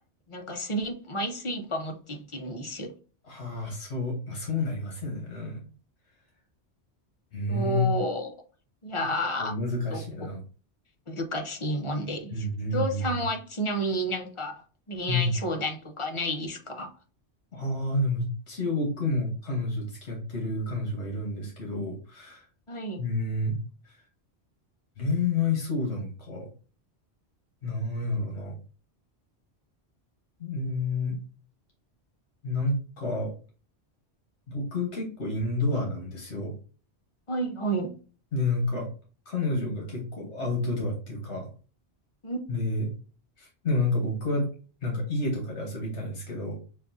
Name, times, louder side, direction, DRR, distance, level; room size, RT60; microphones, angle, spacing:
voice 1, 0.3-2.9 7.5-8.3 8.8-9.5 9.9-10.0 11.1-12.5 12.7-14.6 14.9-16.9 22.7-23.0 37.3-37.9 42.2-42.4, equal, 35° left, 0.6 m, -31 dB
voice 2, 3.2-5.7 7.3-7.9 9.4-10.4 12.3-13.1 15.1-15.4 17.5-22.4 23.0-23.6 25.0-26.5 27.6-28.5 30.4-31.2 32.4-33.3 34.5-36.5 38.3-38.9 39.3-41.5 42.5-42.9 43.4-44.5 44.8-46.6, left 2 dB, 80° left, 1.4 m, -29 dB
6.4 x 2.3 x 2.6 m
omnidirectional pair, 1.1 m